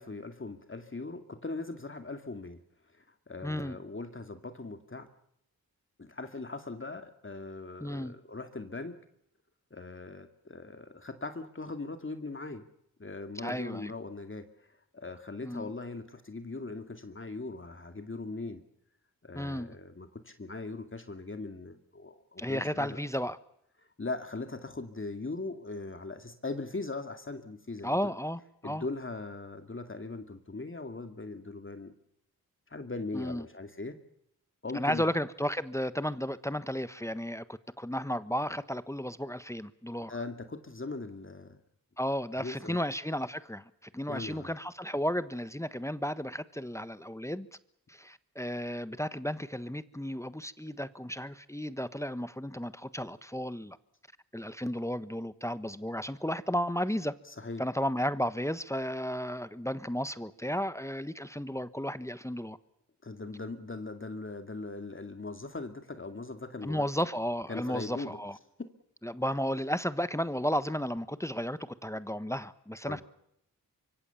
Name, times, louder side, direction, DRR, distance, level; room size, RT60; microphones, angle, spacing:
voice 1, 0.0-2.6 2.9-5.1 6.0-9.0 9.7-12.6 13.0-14.7 14.9-18.6 19.2-23.0 24.0-28.1 28.6-31.9 32.7-34.0 34.6-35.0 40.1-41.6 42.4-42.8 44.1-44.5 57.3-57.6 63.0-66.9 67.5-68.2 72.8-73.0, left 3 dB, 35° left, 2.3 m, -40 dB
voice 2, 3.4-3.8 7.8-8.1 13.4-13.9 15.4-15.7 19.3-19.8 22.4-23.4 27.8-28.8 33.1-33.4 34.7-40.1 42.0-47.5 47.9-53.8 54.3-57.1 57.6-62.6 66.6-68.4 69.0-73.0, equal, 10° left, 1.2 m, -33 dB
24.5 x 24.5 x 7.1 m
cardioid pair, 60°, 36 cm